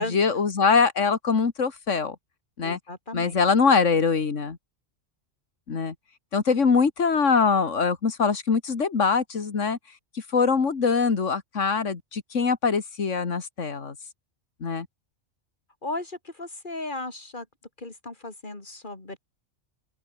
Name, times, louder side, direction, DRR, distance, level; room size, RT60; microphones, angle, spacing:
voice 1, 0.0-2.2 2.6-2.8 3.1-4.6 5.7-5.9 6.3-9.8 10.3-14.0 14.6-14.9, left 5 dB, 70° left, 2.3 m, -23 dB
voice 2, 2.6-3.3 15.8-17.4 17.8-19.2, left 2 dB, 40° left, 3.4 m, -35 dB
open air
omnidirectional pair, 1.3 m